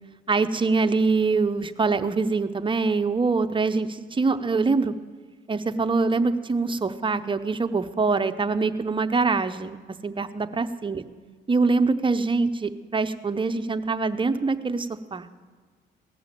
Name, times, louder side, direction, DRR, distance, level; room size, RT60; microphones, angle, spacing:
voice 1, 0.3-4.9 5.5-9.8 10.0-11.0 11.5-15.3, right 4 dB, 25° right, 9 dB, 0.7 m, -24 dB
17.5 x 6.9 x 7.5 m, 1.5 s
cardioid pair, 90°, 20 cm